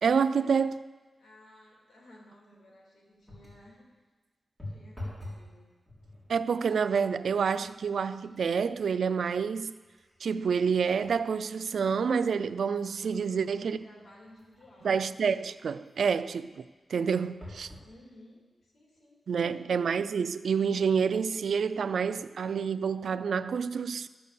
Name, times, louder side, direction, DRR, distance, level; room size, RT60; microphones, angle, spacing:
voice 1, 0.0-0.8 6.3-9.7 10.2-13.8 14.8-16.6 16.9-17.7 19.3-24.1, right 6 dB, 80° right, 0.4 m, -28 dB
voice 2, 1.2-4.0 4.6-5.7 13.2-15.2 17.8-19.8, left 1 dB, 70° left, 3.1 m, -56 dB
sound 1, 3.2-3.7 4.6-5.5 5.8-6.3 7.1-7.2 7.6-11.2 11.7-11.8 12.5-15.2 17.4-17.9 18.6-18.7 18.9-19.0, left 1 dB, 10° left, 4.0 m, -47 dB
14.0 x 6.7 x 6.8 m
wide cardioid pair, 105°, 0 cm